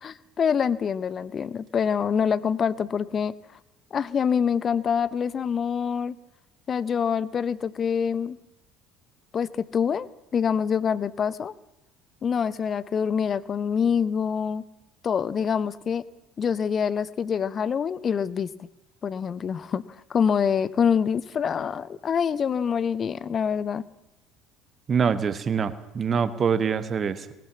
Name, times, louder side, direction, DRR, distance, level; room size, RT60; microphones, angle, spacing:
voice 1, 0.0-3.3 3.9-6.2 6.7-8.4 9.3-11.5 12.2-14.6 15.0-16.0 16.4-18.7 19.0-19.8 20.1-23.8, left 7 dB, 35° left, 18 dB, 0.8 m, -25 dB
voice 2, 24.9-27.3, right 6 dB, 35° right, 14 dB, 1.4 m, -25 dB
19.5 x 18.5 x 7.3 m, 0.95 s
figure-of-eight pair, 60°, 0 cm